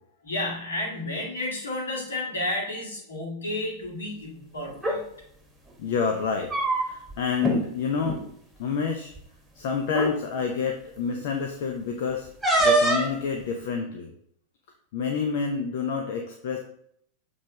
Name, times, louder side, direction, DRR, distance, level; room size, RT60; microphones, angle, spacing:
voice 1, 0.2-5.0, left 1 dB, 70° left, -1 dB, 2.1 m, -31 dB
sound 1, 4.7-5.0 6.2-7.1 7.4-7.6 8.0-8.2 9.2-9.3 9.9-10.1 12.4-13.2, right 2 dB, 5° right, 1.7 m, -23 dB
voice 2, 5.8-6.5 6.8-8.2 8.6-9.1 9.5-12.3 12.6-14.1 14.9-16.6, left 5 dB, 50° left, 4 dB, 0.7 m, -28 dB
7.4 x 3.4 x 4.8 m, 0.70 s
figure-of-eight pair, 90°, 0 cm